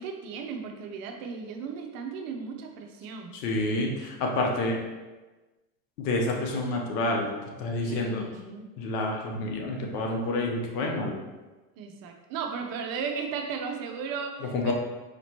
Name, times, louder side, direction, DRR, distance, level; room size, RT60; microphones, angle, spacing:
voice 1, 0.0-3.4 7.8-8.7 11.8-14.7, right 5 dB, 45° right, 3 dB, 0.7 m, -35 dB
voice 2, 3.3-4.8 6.0-7.3 7.6-8.2 8.8-11.1 14.5-14.7, left 2 dB, 80° left, 1 dB, 1.0 m, -28 dB
5.1 x 2.9 x 2.9 m, 1.2 s
supercardioid pair, 115°, 48 cm